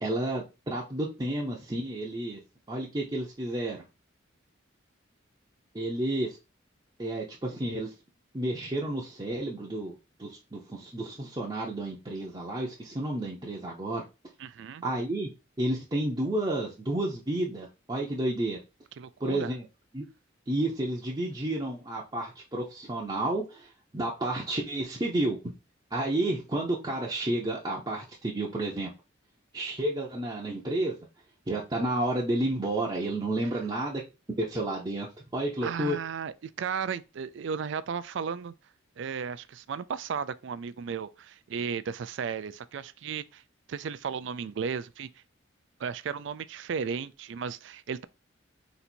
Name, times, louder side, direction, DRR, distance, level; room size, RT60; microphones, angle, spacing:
voice 1, 0.0-2.4 2.7-3.8 5.7-6.4 7.0-7.9 8.3-9.9 10.2-14.0 14.8-15.3 15.6-18.6 19.2-19.6 19.9-20.0 20.5-25.4 25.9-28.9 29.5-31.0 31.5-34.0 34.4-36.0, right 1 dB, 20° right, 0.7 m, -31 dB
voice 2, 14.4-14.8 19.0-19.5 35.6-38.5 39.0-43.4 43.7-45.1 45.8-48.0, right 6 dB, 60° right, 0.3 m, -35 dB
4.0 x 2.6 x 4.3 m
head